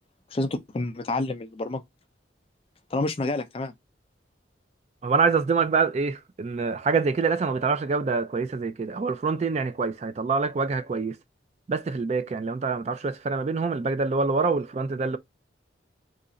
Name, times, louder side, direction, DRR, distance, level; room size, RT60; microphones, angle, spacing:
voice 1, 0.3-1.8 2.9-3.7, left 2 dB, 30° left, 0.4 m, -28 dB
voice 2, 5.0-11.2 11.7-15.2, right 4 dB, 35° right, 0.3 m, -25 dB
2.9 x 2.5 x 3.9 m
head